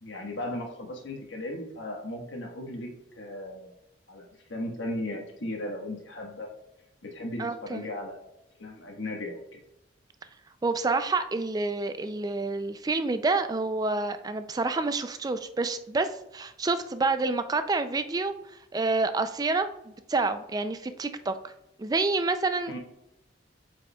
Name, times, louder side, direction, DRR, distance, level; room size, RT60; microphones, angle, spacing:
voice 1, 0.0-2.9 3.2-3.7 4.1-6.5 7.0-8.2 8.6-9.6 22.7-22.8, left 1 dB, 85° left, 1 dB, 1.4 m, -36 dB
voice 2, 7.4-7.9 10.6-18.3 18.7-21.5 21.8-22.8, right 3 dB, 20° right, 10 dB, 0.3 m, -28 dB
8.4 x 4.9 x 2.3 m, 0.88 s
head